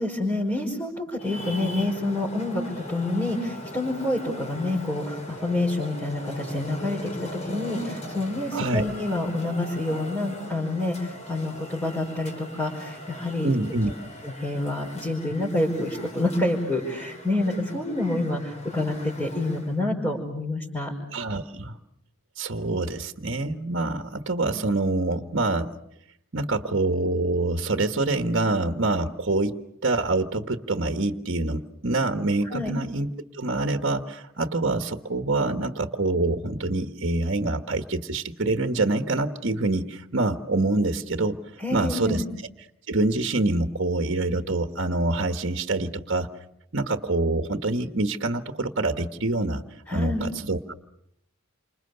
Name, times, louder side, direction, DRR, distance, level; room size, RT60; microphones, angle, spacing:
voice 1, 0.0-2.6 2.9-13.5 14.2-20.9 32.5-32.7 41.6-42.3 49.9-50.2, left 2 dB, 10° left, -4 dB, 5.1 m, -28 dB
Traffic noise roadway noise, 1.2-19.8, left 1 dB, 35° left, 4.1 m, -40 dB
voice 2, 8.5-8.8 13.4-13.9 21.1-21.8 22.4-25.7 26.3-41.4 41.7-42.2 42.9-46.3 46.7-49.6 49.9-50.7, right 2 dB, 60° right, 7 dB, 1.4 m, -26 dB
29.0 x 26.5 x 6.8 m, 0.78 s
head